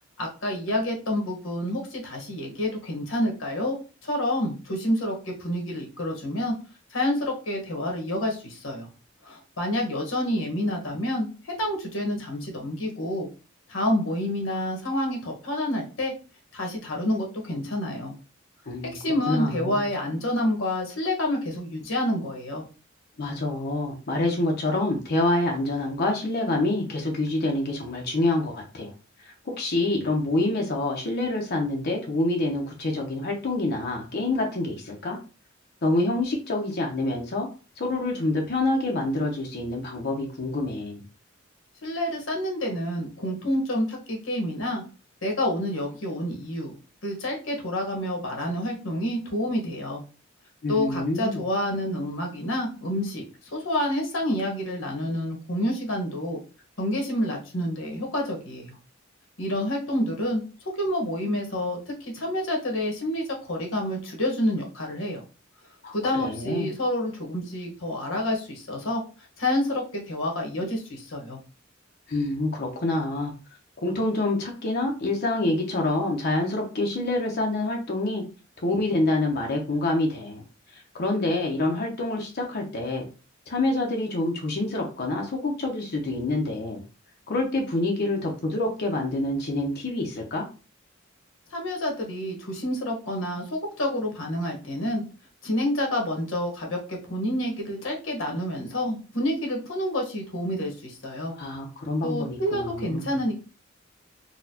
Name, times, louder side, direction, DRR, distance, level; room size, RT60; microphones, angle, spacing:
voice 1, 0.2-3.8 4.0-6.5 6.9-8.9 9.2-13.3 13.7-16.1 16.5-18.1 18.9-22.6 41.8-44.8 45.2-46.7 47.0-50.0 50.7-53.2 53.5-56.4 56.8-58.8 59.4-60.4 60.7-65.2 65.9-69.0 69.4-71.4 91.5-95.0 95.4-101.3 102.0-103.5, left 1 dB, 80° left, 1 dB, 1.2 m, -28 dB
voice 2, 18.7-19.0 19.3-19.9 23.2-28.9 29.2-35.2 35.8-37.5 37.8-41.0 50.6-51.4 65.8-66.7 72.1-73.3 73.8-78.2 78.6-80.4 80.9-83.1 83.5-86.8 87.3-90.4 101.4-103.2, left 2 dB, 55° left, 1 dB, 0.7 m, -27 dB
4.0 x 2.2 x 2.7 m, 0.34 s
head